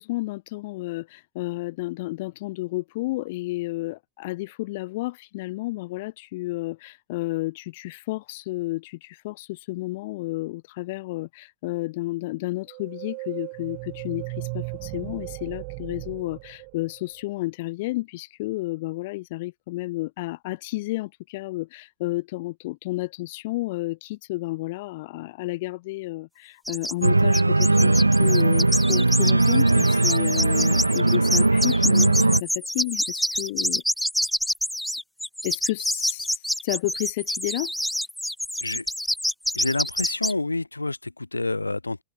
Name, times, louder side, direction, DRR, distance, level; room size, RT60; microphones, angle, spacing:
voice 1, 0.0-33.8 35.4-37.7, left 20 dB, 50° left, 1.2 m, -31 dB
sound 1, 12.7-17.3, right 40 dB or more, 45° right, 4.4 m, -36 dB
sound 2, 26.7-27.1 27.3-40.3, left 1 dB, ahead, 0.3 m, -27 dB
Organ, 27.0-32.4, right 2 dB, 85° right, 0.7 m, -19 dB
voice 2, 39.5-42.0, left 2 dB, 80° left, 1.8 m, -28 dB
figure-of-eight pair, 90°, 0 cm